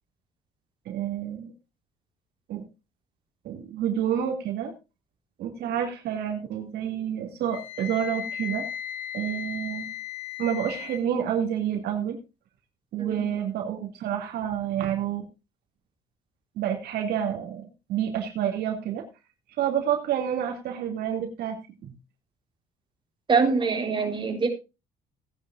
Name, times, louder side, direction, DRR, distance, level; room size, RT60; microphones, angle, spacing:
voice 1, 0.9-1.5 2.5-2.6 3.4-4.7 5.4-8.6 9.1-9.9 10.4-12.2 12.9-15.3 16.6-19.0 19.6-21.9, right 9 dB, 70° right, 3 dB, 2.5 m, -29 dB
Wind instrument woodwind instrument, 7.5-11.0, left 10 dB, 65° left, 5.3 m, -36 dB
voice 2, 23.3-24.5, right 4 dB, 30° right, 3 dB, 3.8 m, -24 dB
17.5 x 10.5 x 2.5 m, 0.27 s
cardioid pair, 110°, 17 cm